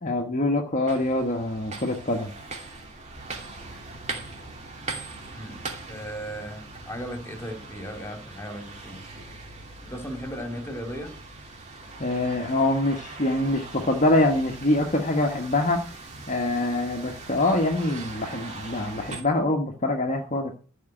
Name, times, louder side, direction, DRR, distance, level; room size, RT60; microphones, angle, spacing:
voice 1, 0.0-2.3 12.0-15.8 16.3-20.5, left 2 dB, 35° left, 3 dB, 1.3 m, -24 dB
sound 1, 0.9-19.2, right 3 dB, 30° right, 2.7 m, -41 dB
voice 2, 5.3-5.6 5.9-9.0 9.8-11.1, equal, 10° left, 4 dB, 2.7 m, -36 dB
13.5 x 5.6 x 9.0 m, 0.41 s
head